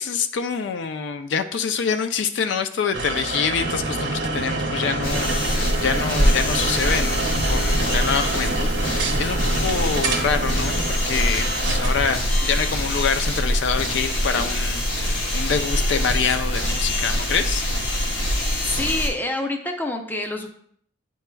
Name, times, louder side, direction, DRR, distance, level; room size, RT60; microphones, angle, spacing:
voice 1, 0.0-7.2 7.5-17.7, left 6 dB, 65° left, 8 dB, 0.4 m, -26 dB
sound 1, 2.9-12.2, right 3 dB, 65° right, 0.9 m, -29 dB
sound 2, 3.6-10.9, right 2 dB, 40° right, 0.6 m, -30 dB
sound 3, 5.0-19.1, equal, 85° left, 1.8 m, -24 dB
voice 2, 18.6-20.5, left 2 dB, 10° left, 4 dB, 0.5 m, -27 dB
9.5 x 4.6 x 2.2 m, 0.63 s
head